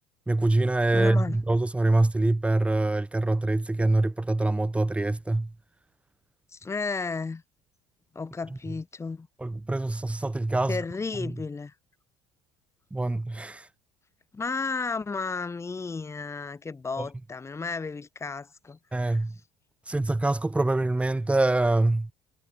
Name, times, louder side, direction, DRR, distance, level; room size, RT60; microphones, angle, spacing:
voice 1, 0.3-5.5 9.4-10.8 11.2-11.3 12.9-13.6 18.9-19.3 19.9-22.1, right 2 dB, 10° right, 1.3 m, -24 dB
voice 2, 0.9-1.4 6.5-7.4 8.1-9.3 10.7-11.7 14.3-19.2, left 4 dB, 20° left, 3.0 m, -33 dB
supercardioid pair, 100°, 13 cm